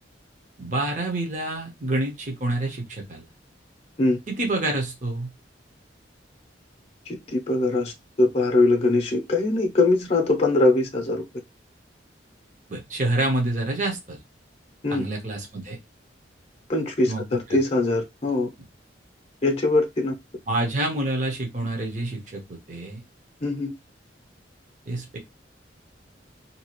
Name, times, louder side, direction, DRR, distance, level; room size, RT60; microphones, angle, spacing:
voice 1, 0.6-3.2 4.3-5.3 12.7-14.2 14.9-15.8 17.1-17.2 17.5-17.6 20.5-23.0 24.9-25.2, right 2 dB, 45° right, 0.8 m, -27 dB
voice 2, 7.1-7.9 8.2-11.2 14.8-15.0 16.7-18.5 19.4-20.1 23.4-23.7, left 2 dB, 35° left, 0.6 m, -22 dB
2.7 x 2.4 x 2.9 m
head